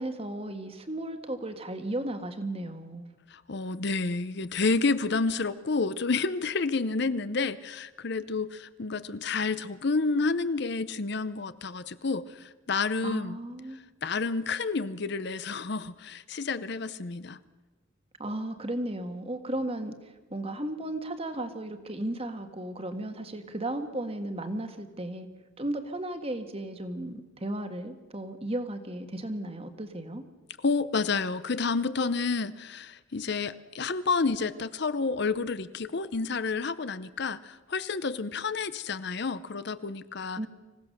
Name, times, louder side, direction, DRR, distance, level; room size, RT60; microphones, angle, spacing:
voice 1, 0.0-3.1 13.0-13.8 18.2-25.3 25.6-30.2 40.4-40.5, right 1 dB, 30° right, 8 dB, 1.5 m, -35 dB
voice 2, 3.3-13.4 14.0-17.4 30.6-40.5, left 4 dB, 55° left, 15 dB, 0.7 m, -30 dB
26.0 x 16.0 x 6.6 m, 1.2 s
head